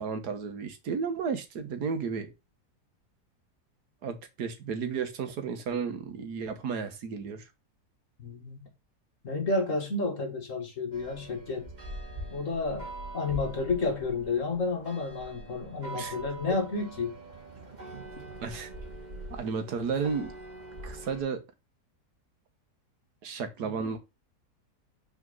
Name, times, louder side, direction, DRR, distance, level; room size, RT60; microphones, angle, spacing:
voice 1, 0.0-2.3 4.0-7.5 15.9-16.2 18.4-18.7 19.3-20.4 20.8-21.4 23.2-24.0, right 5 dB, 75° right, 1.8 m, -33 dB
voice 2, 8.2-8.7 9.2-11.7 12.3-12.9 13.1-17.2, left 3 dB, 50° left, 2.0 m, -31 dB
sound 1, 10.9-21.2, right 1 dB, 30° right, 1.7 m, -43 dB
6.1 x 4.5 x 5.3 m
omnidirectional pair, 1.8 m